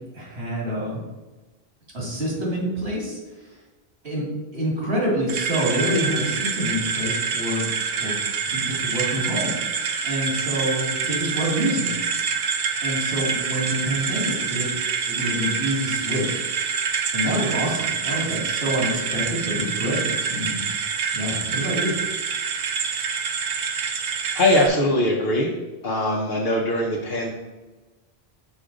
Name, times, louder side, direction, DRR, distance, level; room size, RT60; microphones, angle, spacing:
voice 1, 0.1-1.0 1.9-3.2 4.0-7.6 7.9-8.1 8.5-11.9 12.8-14.7 15.1-16.5 17.1-20.6 21.1-22.0, equal, 80° right, -4 dB, 2.4 m, -27 dB
sound 1, 5.3-24.7, right 6 dB, 60° right, 0.6 m, -26 dB
voice 2, 24.3-25.5 25.8-27.3, left 1 dB, 60° left, -3 dB, 0.9 m, -21 dB
6.1 x 4.9 x 3.9 m, 1.2 s
omnidirectional pair, 1.1 m